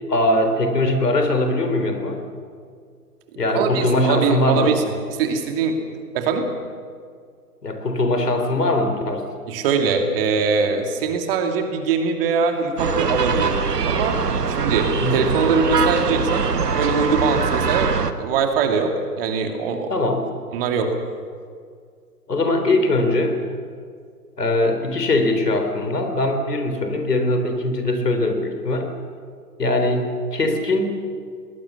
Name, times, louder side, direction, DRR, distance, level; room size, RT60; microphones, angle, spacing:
voice 1, 0.1-2.2 3.4-4.8 7.6-9.2 15.0-15.4 19.9-20.3 22.3-23.4 24.4-28.9 29.6-31.0, left 2 dB, 80° left, 6 dB, 3.9 m, -21 dB
voice 2, 3.5-4.8 5.2-5.8 6.1-6.5 9.5-13.5 13.8-14.2 14.5-16.5 16.7-19.9 20.5-21.0, right 5 dB, 35° right, 5 dB, 2.6 m, -22 dB
sound 1, 12.8-18.1, right 5 dB, 75° right, 1.5 m, -22 dB
22.0 x 19.5 x 7.2 m, 2.1 s
figure-of-eight pair, 125°, 47 cm